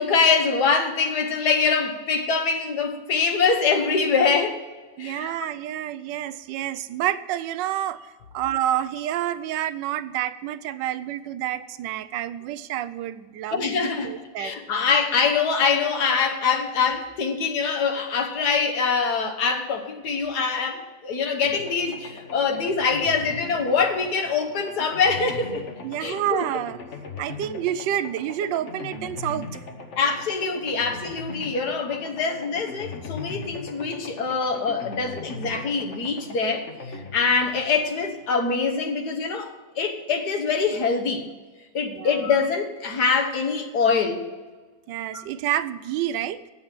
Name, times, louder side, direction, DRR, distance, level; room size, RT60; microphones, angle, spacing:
voice 1, 0.0-4.6 5.0-5.3 13.5-25.7 26.0-26.4 30.0-41.3 41.7-44.3, left 5 dB, 60° left, 4 dB, 1.6 m, -24 dB
voice 2, 5.0-13.7 14.0-14.5 25.8-26.8 27.2-29.5 41.8-42.2 44.9-46.4, right 12 dB, 80° right, 13 dB, 1.2 m, -28 dB
sound 1, 21.4-38.3, left 3 dB, 45° left, 1.1 m, -39 dB
9.1 x 7.1 x 8.7 m, 1.3 s
omnidirectional pair, 2.0 m